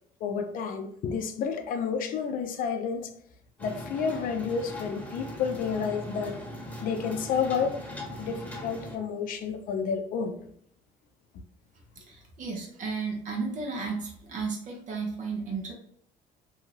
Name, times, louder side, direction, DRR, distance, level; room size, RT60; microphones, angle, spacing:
voice 1, 0.2-3.1 3.6-6.4 6.8-7.8 8.2-10.4, left 6 dB, 65° left, 0.5 m, -30 dB
sound 1, 3.6-9.0, left 1 dB, 10° left, 1.0 m, -40 dB
voice 2, 12.0-15.7, right 4 dB, 55° right, 0.7 m, -34 dB
2.7 x 2.3 x 3.1 m
supercardioid pair, 85°, 16 cm